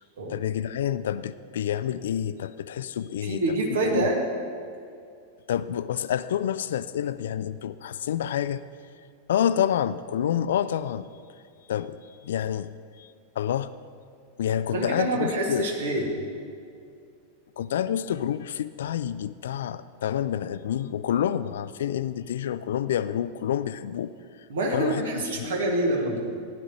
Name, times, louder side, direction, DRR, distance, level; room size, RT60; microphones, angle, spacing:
voice 1, 0.3-3.4 3.7-4.1 5.5-8.6 9.3-11.1 11.7-12.0 12.2-12.7 13.0-13.1 13.4-13.7 14.4-15.7 17.6-24.1 24.7-25.5, left 10 dB, 60° left, 15 dB, 0.4 m, -28 dB
voice 2, 3.2-4.2 14.7-16.1 24.5-26.2, right 1 dB, 60° right, 0 dB, 1.9 m, -26 dB
15.0 x 11.0 x 3.1 m, 2.4 s
figure-of-eight pair, 90°, 0 cm